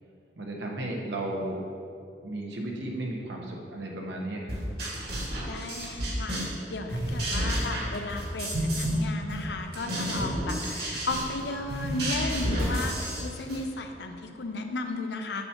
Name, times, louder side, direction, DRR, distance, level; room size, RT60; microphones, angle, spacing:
voice 1, 0.4-1.6 2.2-4.6, right 1 dB, 75° right, -1 dB, 1.1 m, -34 dB
sound 1, 4.5-6.6 6.9-9.0 9.3-13.6, equal, 60° right, 1.8 m, -30 dB
voice 2, 5.5-6.4 6.7-15.5, left 2 dB, 65° left, 5 dB, 0.6 m, -34 dB
8.1 x 7.0 x 2.9 m, 2.5 s
head